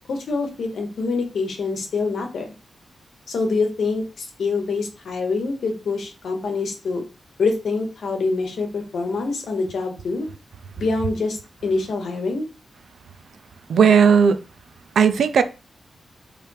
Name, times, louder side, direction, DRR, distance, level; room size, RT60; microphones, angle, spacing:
voice 1, 0.1-2.5 3.3-7.0 7.4-10.3 10.8-12.4, left 3 dB, 70° left, 1.1 m, -25 dB
voice 2, 13.7-14.4 15.0-15.4, right 6 dB, 75° right, 0.5 m, -15 dB
3.3 x 3.3 x 4.5 m
wide cardioid pair, 165°, 0 cm